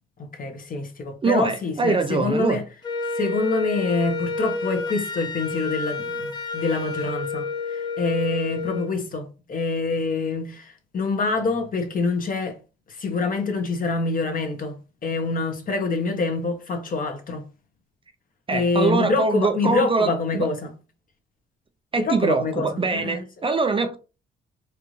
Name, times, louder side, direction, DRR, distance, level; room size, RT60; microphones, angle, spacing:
voice 1, 0.2-2.6 3.1-12.6 12.9-17.4 18.5-20.7 22.0-23.2, left 3 dB, 45° left, 1.2 m, -26 dB
voice 2, 1.2-2.6 18.5-20.5 21.9-24.0, right 4 dB, 25° right, 0.5 m, -23 dB
Wind instrument woodwind instrument, 2.8-8.9, left 4 dB, 20° left, 1.0 m, -30 dB
4.6 x 2.6 x 3.1 m
cardioid pair, 90°, 20 cm